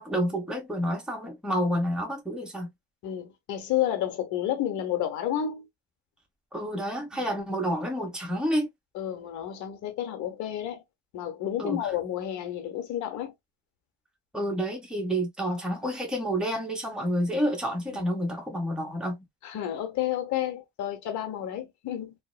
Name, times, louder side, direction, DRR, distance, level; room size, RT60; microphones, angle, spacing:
voice 1, 0.0-2.7 6.5-8.7 11.6-11.8 14.3-19.2, equal, ahead, 1.2 m, -29 dB
voice 2, 3.0-5.7 8.9-10.8 11.1-13.3 17.9-18.0 19.4-22.1, left 11 dB, 65° left, 1.0 m, -31 dB
2.8 x 2.1 x 2.3 m
supercardioid pair, 70°, 32 cm